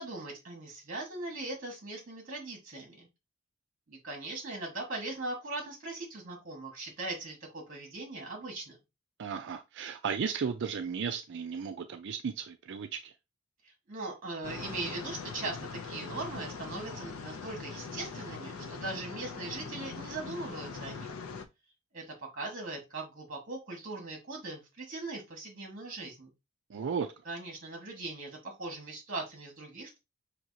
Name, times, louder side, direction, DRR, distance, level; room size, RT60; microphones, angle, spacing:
voice 1, 0.0-3.1 3.9-8.8 13.6-21.1 21.9-22.0 22.3-26.3 27.2-30.0, right 2 dB, 40° right, 1.6 m, -40 dB
voice 2, 9.2-13.1 26.7-27.1, right 6 dB, 55° right, 0.4 m, -35 dB
sound 1, 14.4-21.4, left 4 dB, 75° left, 0.6 m, -42 dB
6.0 x 2.8 x 2.8 m
head